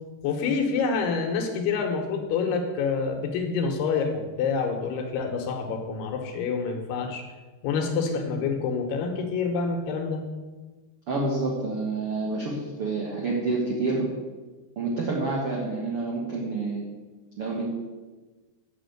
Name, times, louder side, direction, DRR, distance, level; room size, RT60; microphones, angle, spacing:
voice 1, 0.2-7.2 7.6-10.2, left 5 dB, 70° left, 3 dB, 3.0 m, -27 dB
voice 2, 11.1-14.1 14.7-16.8 17.4-17.7, right 3 dB, 85° right, -3 dB, 1.2 m, -28 dB
8.4 x 6.3 x 7.8 m, 1.3 s
omnidirectional pair, 5.1 m